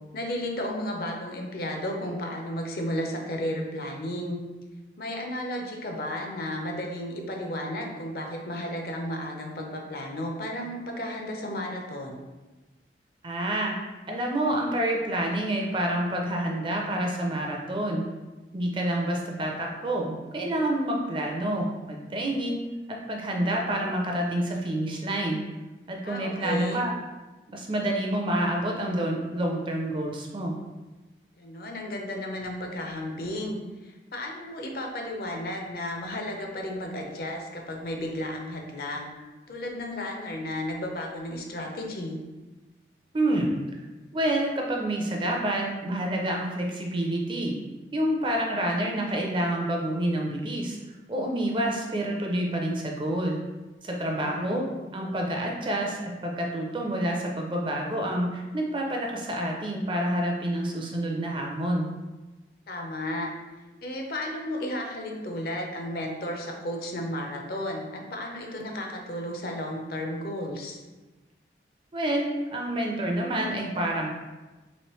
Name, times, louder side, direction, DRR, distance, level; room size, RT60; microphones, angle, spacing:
voice 1, 0.1-4.4 5.0-12.2 26.0-26.9 31.4-39.1 39.5-42.2 54.2-54.6 62.7-63.3 63.8-70.8, left 1 dB, 55° left, 1 dB, 0.5 m, -33 dB
voice 2, 13.2-13.8 14.1-18.1 18.5-22.6 22.9-25.4 25.9-26.9 27.5-30.6 43.1-43.5 44.1-47.6 47.9-50.8 51.1-53.4 53.8-54.7 54.9-61.9 71.9-74.1, right 1 dB, 30° right, 0 dB, 0.4 m, -28 dB
3.1 x 2.9 x 3.0 m, 1.2 s
head